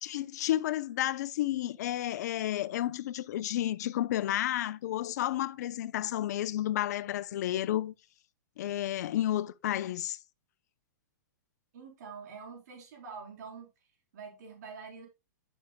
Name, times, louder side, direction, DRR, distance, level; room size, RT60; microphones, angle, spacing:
voice 1, 0.0-7.9 8.6-10.2, left 13 dB, 60° left, 0.7 m, -31 dB
voice 2, 11.7-13.7 14.1-15.1, right 5 dB, 60° right, 3.9 m, -45 dB
10.5 x 7.4 x 2.3 m
hypercardioid pair, 135°, 10 cm